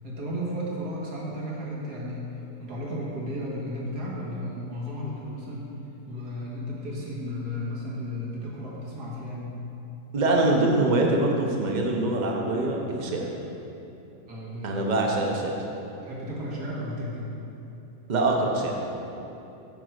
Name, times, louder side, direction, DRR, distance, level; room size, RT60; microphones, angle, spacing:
voice 1, 0.0-2.3 2.6-5.7 6.1-9.6 14.3-14.8 16.0-17.3, equal, 75° right, -5 dB, 2.2 m, -34 dB
voice 2, 10.1-13.3 14.6-15.6 18.1-19.0, right 2 dB, 35° right, 0 dB, 0.8 m, -24 dB
9.2 x 4.6 x 6.4 m, 2.9 s
omnidirectional pair, 1.7 m